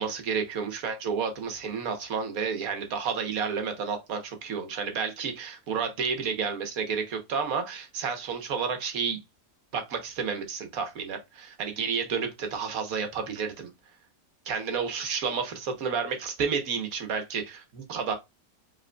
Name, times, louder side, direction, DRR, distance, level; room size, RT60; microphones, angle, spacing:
voice 1, 0.0-9.2 9.7-13.7 14.4-18.1, right 6 dB, 75° right, 1.4 m, -31 dB
5.1 x 3.5 x 2.2 m
omnidirectional pair, 1.5 m